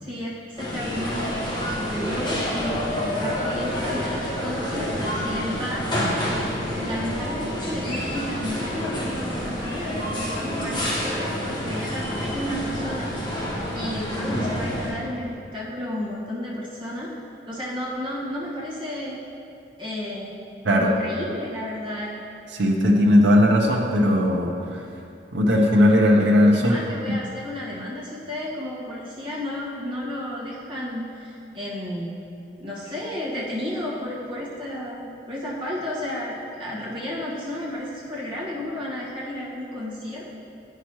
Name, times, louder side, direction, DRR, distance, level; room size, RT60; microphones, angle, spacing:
voice 1, 0.0-5.8 6.6-13.1 13.4-17.1 17.5-19.2 19.8-20.3 20.7-22.1 26.5-32.1 32.6-40.3, left 1 dB, 30° right, -8 dB, 1.5 m, -32 dB
sound 1, 0.6-14.9, equal, 25° left, 1.3 m, -28 dB
voice 2, 22.5-24.8 25.3-26.7, left 1 dB, 90° right, 0 dB, 0.7 m, -18 dB
9.3 x 5.8 x 3.0 m, 2.6 s
head